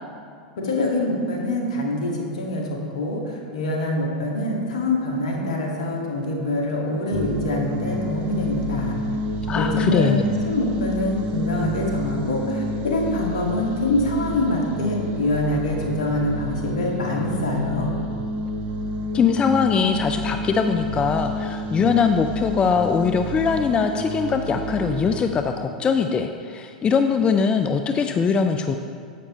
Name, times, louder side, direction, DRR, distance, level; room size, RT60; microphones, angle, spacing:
voice 1, 0.6-9.0 9.6-10.2 10.5-17.9, left 1 dB, 70° left, -1 dB, 1.9 m, -25 dB
sound 1, 7.1-25.2, equal, 40° right, 0.9 m, -29 dB
voice 2, 9.5-10.2 19.1-28.8, left 6 dB, 25° left, 6 dB, 0.4 m, -21 dB
10.0 x 8.4 x 3.1 m, 2.3 s
hypercardioid pair, 95°, 4 cm